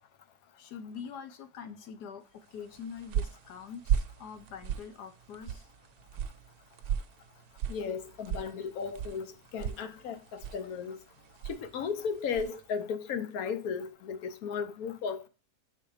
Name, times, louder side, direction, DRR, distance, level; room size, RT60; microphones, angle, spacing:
voice 1, 0.6-5.7, left 7 dB, 90° left, 1.4 m, -44 dB
sound 1, 2.6-12.7, right 9 dB, 80° right, 1.1 m, -37 dB
voice 2, 7.7-11.0 11.5-15.3, left 6 dB, 70° left, 1.2 m, -35 dB
5.5 x 4.2 x 4.8 m
omnidirectional pair, 1.7 m